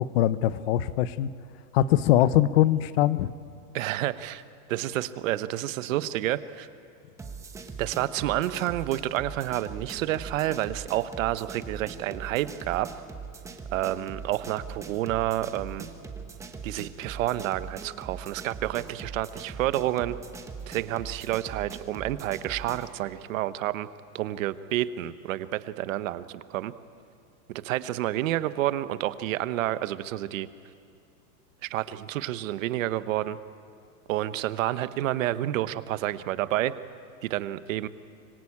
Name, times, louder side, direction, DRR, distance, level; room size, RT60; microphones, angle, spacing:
voice 1, 0.0-1.3 1.7-3.3, left 13 dB, 40° left, 16 dB, 0.8 m, -22 dB
voice 2, 3.7-4.4 4.7-6.7 7.8-12.9 13.7-15.9 16.6-20.2 20.7-23.9 24.1-26.7 27.6-30.5 31.6-33.4 34.1-36.7 37.2-37.9, right 14 dB, 60° right, 14 dB, 1.1 m, -29 dB
sound 1, 7.2-22.9, right 5 dB, 5° right, 0.9 m, -41 dB
25.5 x 22.0 x 8.6 m, 2.4 s
supercardioid pair, 165°, 45 cm